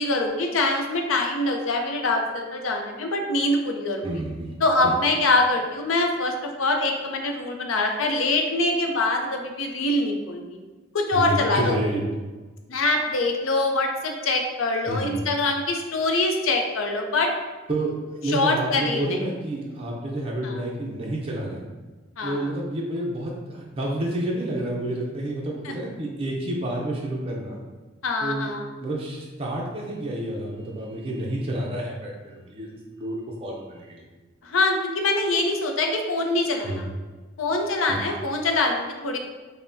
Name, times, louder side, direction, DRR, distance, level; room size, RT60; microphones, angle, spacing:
voice 1, 0.0-4.1 4.6-10.6 10.9-11.8 12.7-17.3 18.2-19.2 20.4-20.6 22.2-22.5 25.6-25.7 28.0-28.6 34.4-36.8 37.4-39.2, left 2 dB, 75° left, 3 dB, 0.5 m, -24 dB
voice 2, 4.0-4.5 4.8-4.9 11.1-12.0 14.9-15.2 17.7-21.6 22.2-27.6 28.2-28.5 28.8-34.1 36.6-36.9 37.9-38.0, right 1 dB, 30° right, -3 dB, 0.4 m, -29 dB
5.5 x 2.1 x 2.6 m, 1.3 s
head